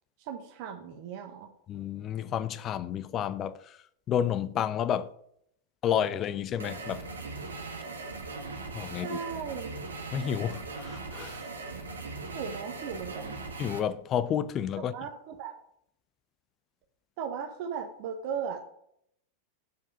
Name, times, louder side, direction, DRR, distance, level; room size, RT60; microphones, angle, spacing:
voice 1, 0.2-1.5 9.0-9.8 12.3-13.3 14.9-15.5 17.2-18.6, right 7 dB, 45° right, 1.0 m, -37 dB
voice 2, 1.7-3.8 4.1-5.1 5.8-7.0 8.7-9.2 10.1-11.5 13.6-14.9, left 9 dB, 30° left, 0.4 m, -30 dB
sound 1, 6.6-13.8, right 3 dB, 70° right, 1.3 m, -39 dB
7.7 x 4.9 x 6.6 m
figure-of-eight pair, 90°, 0 cm